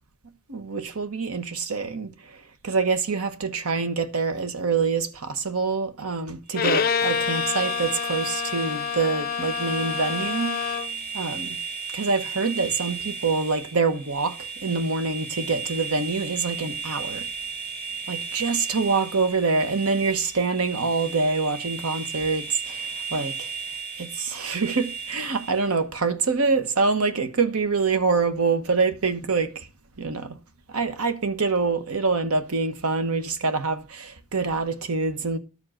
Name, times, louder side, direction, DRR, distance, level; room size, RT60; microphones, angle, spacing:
voice 1, 0.5-2.1 2.6-10.5 11.1-11.6 11.9-14.3 14.6-17.2 18.1-22.9 23.1-23.5 24.0-29.5 30.0-30.4 30.7-35.4, right 4 dB, 90° right, 1.1 m, -25 dB
Bowed string instrument, 6.5-11.0, left 7 dB, 45° left, 0.4 m, -27 dB
sound 1, 6.5-25.7, right 5 dB, 45° right, 2.3 m, -35 dB
12.5 x 4.9 x 7.6 m
head